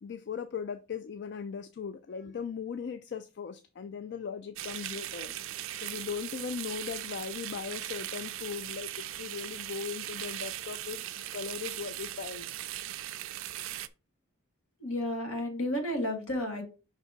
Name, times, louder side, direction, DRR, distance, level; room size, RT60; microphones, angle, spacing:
voice 1, 0.0-5.3 5.7-12.5, left 6 dB, 50° left, 11 dB, 0.3 m, -38 dB
sound 1, 4.6-13.9, right 13 dB, 65° right, 0.4 m, -39 dB
voice 2, 14.8-16.6, left 1 dB, 70° left, 3 dB, 2.0 m, -32 dB
5.3 x 3.9 x 5.0 m, 0.33 s
head